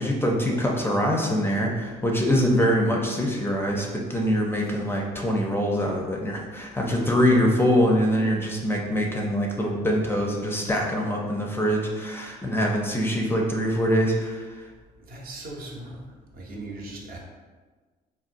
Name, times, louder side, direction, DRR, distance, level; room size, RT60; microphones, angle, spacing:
voice 1, 0.0-14.6, equal, 15° left, -1 dB, 0.4 m, -24 dB
voice 2, 15.1-16.0 16.3-17.2, right 2 dB, 60° right, -2 dB, 0.8 m, -38 dB
3.9 x 2.2 x 2.5 m, 1.4 s
cardioid pair, 110°, 17 cm